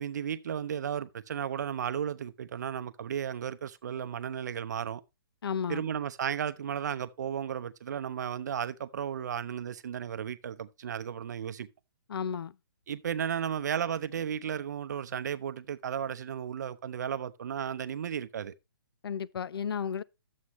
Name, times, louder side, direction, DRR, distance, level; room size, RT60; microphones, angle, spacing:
voice 1, 0.0-5.0 5.7-11.7 12.9-18.5, right 8 dB, 50° right, 0.6 m, -34 dB
voice 2, 5.4-5.8 12.1-12.5 19.0-20.0, left 7 dB, 90° left, 0.4 m, -33 dB
11.5 x 7.4 x 3.0 m
hypercardioid pair, 170°, 12 cm